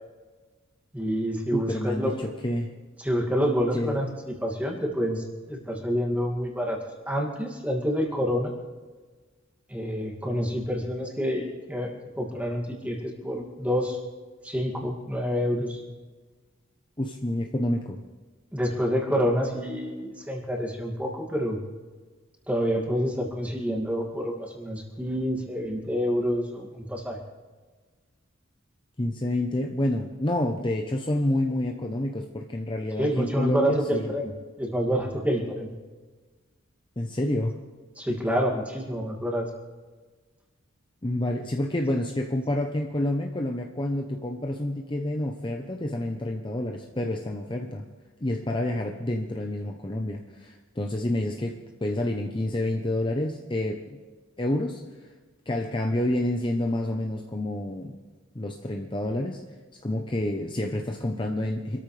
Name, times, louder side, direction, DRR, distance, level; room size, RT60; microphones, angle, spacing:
voice 1, 0.9-2.3 3.0-6.8 7.1-8.5 9.7-14.0 14.4-15.8 18.5-21.6 22.5-27.2 32.9-34.3 34.6-35.7 38.0-39.5, equal, 5° right, 0 dB, 2.2 m, -28 dB
voice 2, 1.5-2.7 3.7-4.0 17.0-18.0 29.0-34.0 37.0-37.5 41.0-47.8 48.2-54.0 54.4-54.8 55.5-58.0 58.3-59.4 59.8-61.8, left 1 dB, 25° left, 2 dB, 0.8 m, -28 dB
26.5 x 13.5 x 3.3 m, 1.4 s
head